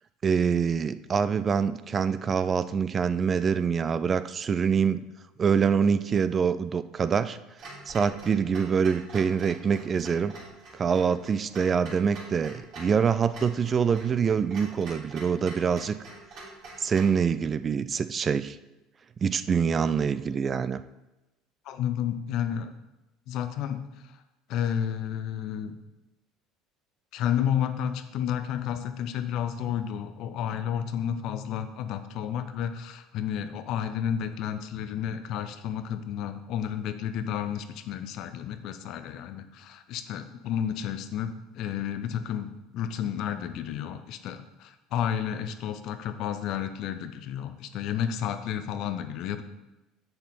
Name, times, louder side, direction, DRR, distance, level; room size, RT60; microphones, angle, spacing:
voice 1, 0.2-5.0 5.4-7.4 7.9-10.3 10.7-16.0 16.8-18.6 19.2-20.8, right 6 dB, 35° right, 13 dB, 0.4 m, -25 dB
Clock, 7.6-17.2, right 2 dB, 55° right, 3.4 m, -45 dB
voice 2, 21.7-22.7 23.3-23.9 24.5-25.8 27.1-49.4, left 9 dB, 55° left, 10 dB, 0.7 m, -31 dB
8.1 x 6.7 x 4.2 m, 0.99 s
hypercardioid pair, 65°, 0 cm